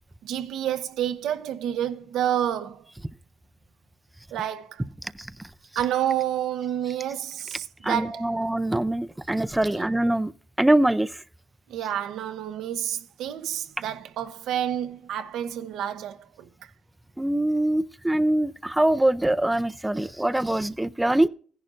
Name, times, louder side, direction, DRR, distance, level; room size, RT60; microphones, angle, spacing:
voice 1, 0.2-2.9 4.3-4.8 5.7-8.4 9.7-9.9 11.7-16.7, right 10 dB, 80° right, 0.8 m, -29 dB
voice 2, 7.8-10.3 10.6-11.1 17.2-21.3, right 1 dB, 10° right, 0.5 m, -23 dB
15.0 x 11.0 x 2.6 m
cardioid pair, 90°, 0 cm